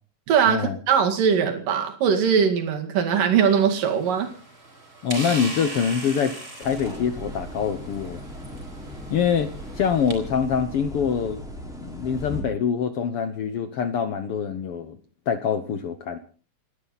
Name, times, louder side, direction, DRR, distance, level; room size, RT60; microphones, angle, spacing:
voice 1, 0.3-4.3, right 7 dB, 70° right, 4 dB, 3.9 m, -21 dB
sound 1, 3.3-10.2, right 2 dB, 30° right, 5.2 m, -39 dB
voice 2, 5.0-8.2 9.1-11.4 11.7-15.0 15.3-16.2, left 7 dB, 70° left, 10 dB, 1.4 m, -25 dB
sound 2, 6.6-12.4, equal, ahead, 4.2 m, -38 dB
30.0 x 11.5 x 4.1 m, 0.38 s
omnidirectional pair, 4.0 m